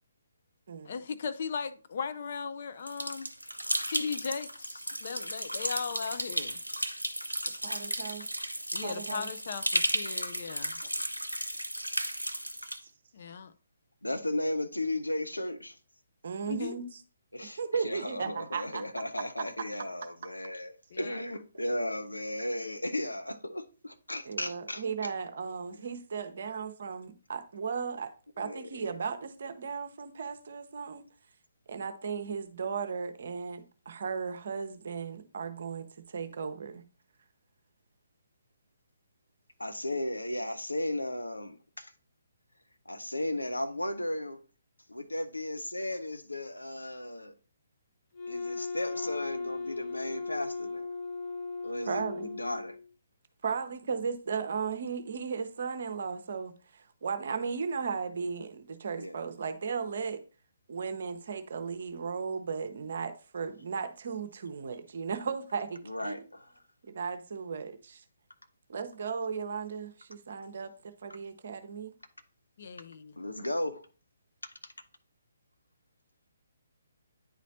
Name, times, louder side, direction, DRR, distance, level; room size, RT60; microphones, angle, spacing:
voice 1, 0.8-3.3 3.9-6.6 8.7-10.8 13.1-13.5 16.4-16.9 20.9-21.2 72.6-73.1, left 5 dB, 45° left, 0.5 m, -37 dB
sound 1, 2.9-12.8, equal, 90° right, 0.6 m, -34 dB
voice 2, 3.5-4.0 7.3-7.5 12.6-12.7 14.0-15.8 17.3-25.1 28.4-28.9 39.6-41.9 42.9-44.4 44.9-47.3 48.3-50.9 51.6-52.8 59.0-59.2 65.8-66.5 73.2-73.9 74.4-74.5, left 1 dB, 80° left, 0.7 m, -35 dB
voice 3, 7.6-8.3 8.8-9.3 16.2-16.9 17.6-18.8 24.3-28.1 28.4-31.0 31.7-36.8 51.9-52.3 53.4-60.2 60.7-66.2 66.8-68.0 68.7-71.9, right 5 dB, 50° right, 0.7 m, -36 dB
Wind instrument woodwind instrument, 48.1-52.9, left 4 dB, 25° left, 1.0 m, -37 dB
9.4 x 4.1 x 2.7 m
figure-of-eight pair, 135°, 0 cm